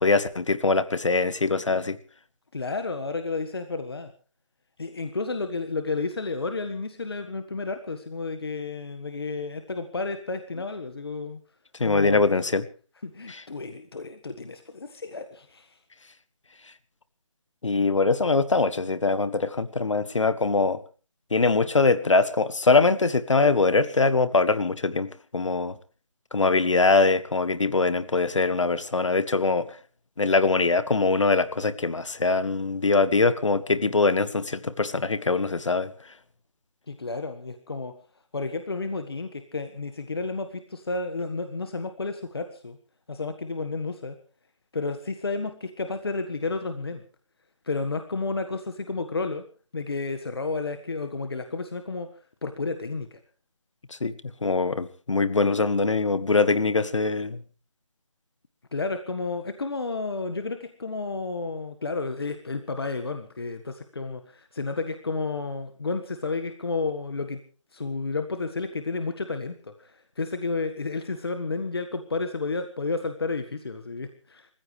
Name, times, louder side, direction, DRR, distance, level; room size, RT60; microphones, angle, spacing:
voice 1, 0.0-2.0 11.8-12.7 13.3-13.4 17.6-20.8 21.3-25.7 26.3-29.7 30.2-35.9 54.0-54.1 54.4-57.4, left 3 dB, 65° left, 15 dB, 1.6 m, -22 dB
voice 2, 2.5-4.1 4.8-11.4 11.8-12.2 13.0-15.8 36.9-37.9 38.3-42.8 43.1-44.2 44.7-47.0 47.6-49.4 49.7-52.1 52.4-53.2 58.7-67.4 67.7-74.5, left 3 dB, 45° left, 8 dB, 1.5 m, -31 dB
28.5 x 15.0 x 3.3 m, 0.38 s
figure-of-eight pair, 180°, 17 cm